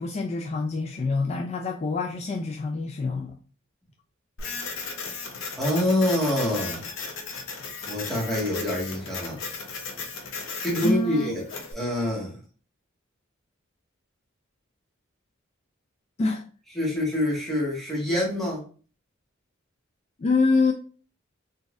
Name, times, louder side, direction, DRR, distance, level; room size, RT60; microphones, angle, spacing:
voice 1, 0.0-3.4 10.8-11.4 16.2-16.4 20.2-20.7, left 3 dB, 35° left, 2 dB, 0.3 m, -25 dB
Printer, 4.4-11.7, left 4 dB, 70° left, 0.8 m, -36 dB
voice 2, 5.6-6.8 7.9-9.4 10.6-11.4 11.7-12.4 16.7-18.6, left 1 dB, ahead, -5 dB, 1.4 m, -26 dB
3.9 x 2.6 x 2.4 m, 0.39 s
head